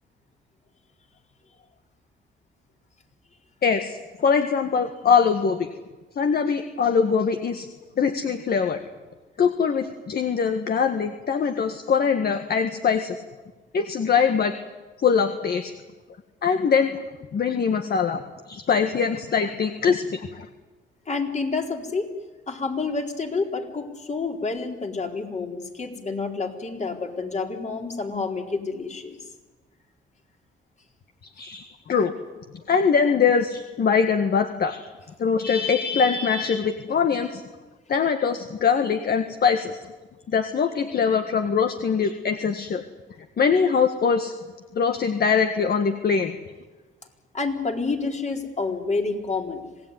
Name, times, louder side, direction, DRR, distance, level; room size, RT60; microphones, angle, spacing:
voice 1, 3.6-5.7 6.2-7.7 8.0-8.8 9.4-13.2 13.7-14.5 15.0-15.7 16.4-17.0 17.3-18.2 18.5-20.5 31.4-32.1 32.7-34.9 35.2-37.4 37.9-39.8 40.3-42.8 43.4-44.3 44.8-46.3, left 6 dB, 50° left, 7 dB, 1.8 m, -22 dB
voice 2, 21.1-22.1 22.5-29.2 47.3-49.6, left 4 dB, 35° left, 3 dB, 4.3 m, -28 dB
26.0 x 18.0 x 9.7 m, 1.2 s
cardioid pair, 90°, 20 cm